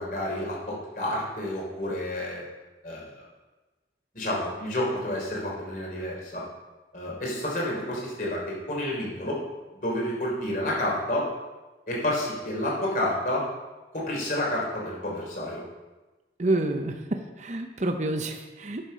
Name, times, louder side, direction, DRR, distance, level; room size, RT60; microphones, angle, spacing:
voice 1, 0.0-2.4 2.8-3.3 4.1-6.4 6.9-9.4 9.8-11.3 11.9-13.4 13.9-15.6, left 1 dB, 50° left, -3 dB, 3.6 m, -30 dB
voice 2, 16.4-18.9, right 2 dB, 40° right, 5 dB, 0.7 m, -28 dB
10.0 x 6.7 x 5.5 m, 1.2 s
head